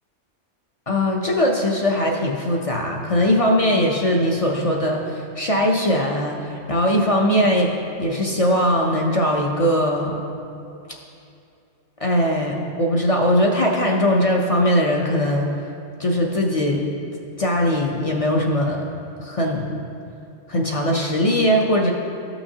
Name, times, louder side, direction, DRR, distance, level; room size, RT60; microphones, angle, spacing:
voice 1, 0.9-10.2 12.0-15.5 16.0-16.9 17.4-18.8 19.2-19.7 20.5-21.9, equal, 40° left, 0 dB, 0.5 m, -20 dB
13.5 x 5.8 x 2.8 m, 2.6 s
omnidirectional pair, 1.3 m